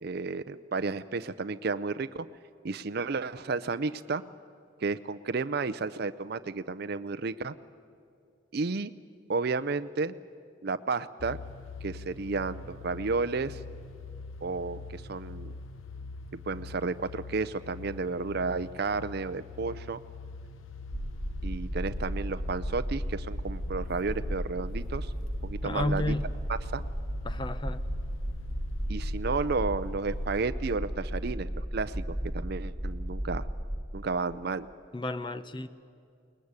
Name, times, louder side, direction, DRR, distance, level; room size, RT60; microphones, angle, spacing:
voice 1, 0.0-2.3 2.6-4.2 4.8-7.5 8.5-8.9 9.3-10.1 10.6-11.4 11.8-13.6 14.4-15.5 16.5-20.0 21.4-25.1 25.4-26.1 26.5-26.9 28.9-33.5 33.9-34.7, right 4 dB, 50° right, 11 dB, 0.5 m, -32 dB
sound 1, 11.2-30.4, left 3 dB, 85° left, 0.9 m, -45 dB
sound 2, 20.9-33.9, equal, 5° left, 2.0 m, -34 dB
voice 2, 25.6-26.3 27.2-27.8 34.9-35.7, left 1 dB, 25° left, 12 dB, 0.6 m, -32 dB
22.0 x 20.0 x 9.6 m, 2.4 s
head